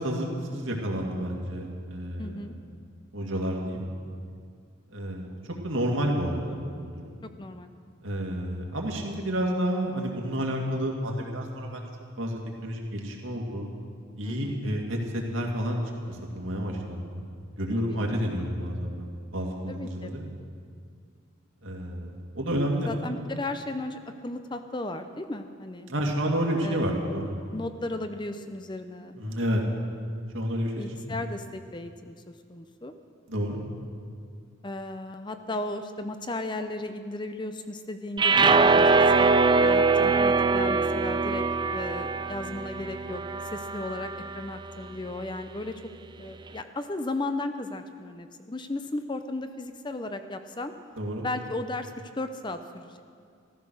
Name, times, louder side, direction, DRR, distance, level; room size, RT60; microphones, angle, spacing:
voice 1, 0.0-2.4 3.1-3.8 4.9-5.3 5.6-6.6 6.9-7.2 8.0-11.9 12.2-13.7 14.2-15.8 16.1-17.2 17.6-19.1 19.3-20.2 21.6-22.9 25.9-27.4 29.2-29.6 30.3-30.8 33.3-33.6 51.0-51.2, equal, 70° right, 0 dB, 2.3 m, -30 dB
voice 2, 2.2-2.5 7.2-7.7 14.2-14.6 17.8-18.2 19.7-20.1 22.9-25.9 26.6-26.9 27.5-29.2 30.8-32.2 32.5-32.9 34.6-41.4 41.7-43.2 43.5-45.8 46.2-50.7 51.2-53.0, left 2 dB, 20° left, 8 dB, 0.6 m, -35 dB
sound 1, 38.2-44.4, right 4 dB, 20° right, 0.4 m, -22 dB
14.5 x 14.5 x 6.4 m, 2.2 s
head